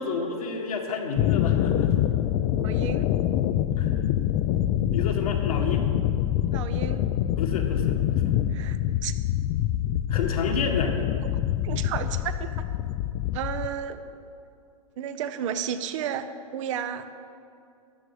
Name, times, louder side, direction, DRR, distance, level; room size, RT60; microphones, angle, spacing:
voice 1, 0.0-1.9 3.8-3.9 4.9-5.9 7.4-8.4 10.1-10.9, left 4 dB, 75° left, 2 dB, 1.7 m, -30 dB
sound 1, 1.2-13.7, left 12 dB, 40° left, 0.5 m, -25 dB
voice 2, 2.6-3.1 6.5-7.0 8.5-9.1 11.6-12.7 13.3-14.0 15.0-17.1, right 9 dB, 55° right, 11 dB, 0.8 m, -32 dB
13.0 x 8.7 x 4.9 m, 2.4 s
hypercardioid pair, 125°, 19 cm